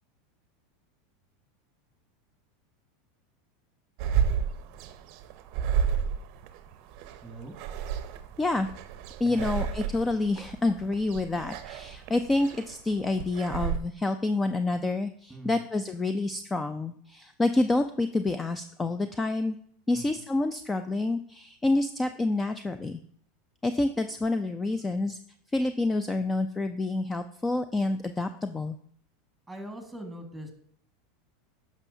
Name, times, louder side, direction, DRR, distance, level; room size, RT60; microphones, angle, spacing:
sound 1, 4.0-13.8, right 8 dB, 60° right, 0.6 m, -32 dB
voice 1, 7.2-7.5 9.2-9.4 15.3-15.6 19.9-20.1 29.5-30.5, right 2 dB, 5° right, 4 dB, 1.7 m, -41 dB
voice 2, 9.2-19.6 19.9-23.0 23.6-25.2 25.5-28.8, left 2 dB, 15° left, 10 dB, 0.4 m, -28 dB
9.7 x 6.1 x 2.7 m, 0.62 s
hypercardioid pair, 95°, 0 cm